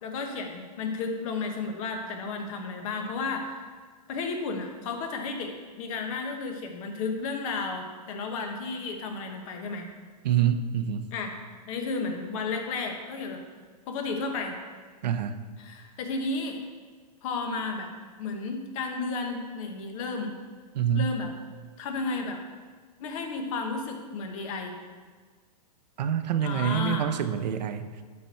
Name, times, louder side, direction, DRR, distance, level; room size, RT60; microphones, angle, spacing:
voice 1, 0.0-3.6 4.1-9.9 11.1-11.3 11.7-13.4 13.9-14.5 15.6-16.6 17.2-17.9 18.2-20.3 20.9-21.3 21.8-22.4 23.0-24.8 26.4-27.1, left 4 dB, 55° left, 4 dB, 1.4 m, -33 dB
voice 2, 10.2-11.1 15.0-15.3 20.8-21.1 26.0-28.0, right 9 dB, 80° right, 9 dB, 0.7 m, -26 dB
12.0 x 4.5 x 4.3 m, 1.5 s
hypercardioid pair, 135°, 21 cm